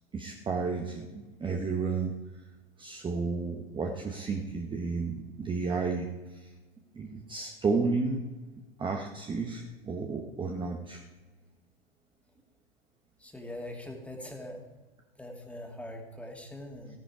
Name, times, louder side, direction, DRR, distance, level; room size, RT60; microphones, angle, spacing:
voice 1, 0.1-2.1 2.8-6.5 6.9-8.3 8.8-11.0, right 4 dB, 15° right, 2 dB, 1.1 m, -32 dB
voice 2, 13.2-14.7 15.2-17.0, left 1 dB, 5° left, 1 dB, 2.4 m, -42 dB
15.0 x 10.5 x 4.9 m, 1.2 s
figure-of-eight pair, 95°, 29 cm